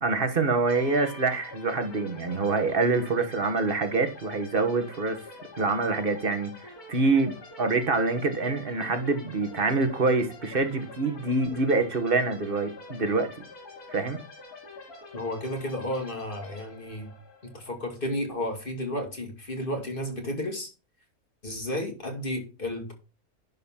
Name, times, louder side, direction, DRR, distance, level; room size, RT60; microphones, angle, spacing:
voice 1, 0.0-5.2 5.6-13.3 13.9-14.2, right 3 dB, 40° right, 1.6 m, -26 dB
sound 1, 0.6-18.2, left 2 dB, 90° left, 3.3 m, -46 dB
voice 2, 15.1-17.1 17.4-20.7 21.4-22.9, left 1 dB, 35° left, 2.4 m, -32 dB
11.0 x 4.2 x 5.7 m
omnidirectional pair, 1.6 m